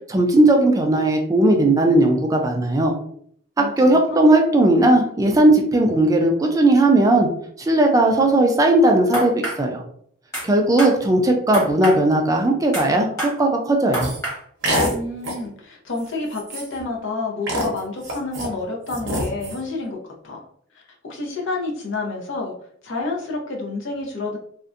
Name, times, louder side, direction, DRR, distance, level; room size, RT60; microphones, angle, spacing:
voice 1, 0.1-2.9 3.6-7.3 7.6-9.8 10.4-14.1, right 1 dB, 15° right, 2 dB, 0.3 m, -17 dB
voice 2, 3.6-4.2 14.9-20.0 20.2-20.4 21.0-22.5 22.8-24.4, left 3 dB, 65° left, 0 dB, 0.6 m, -29 dB
sound 1, 9.1-9.6 10.3-10.5 10.8-11.0 11.5-12.0 12.7-12.9 13.2-13.4 13.9-14.4, right 1 dB, 15° left, 1.1 m, -26 dB
sound 2, 14.0-14.2 14.6-14.9 15.2-15.5 16.0-16.1 16.3-16.8 17.5-18.5 18.9-19.6, equal, 60° right, 0.7 m, -25 dB
2.5 x 2.1 x 2.4 m, 0.63 s
head